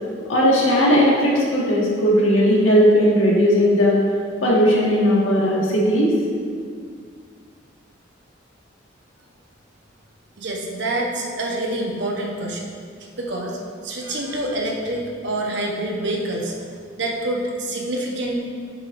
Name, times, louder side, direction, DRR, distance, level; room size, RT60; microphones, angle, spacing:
voice 1, 0.3-4.0 4.4-6.1, equal, 90° left, -5 dB, 1.8 m, -17 dB
voice 2, 10.4-12.7 13.2-13.6 13.8-18.4, right 1 dB, 60° right, -1 dB, 1.0 m, -26 dB
7.8 x 7.5 x 2.6 m, 2.1 s
head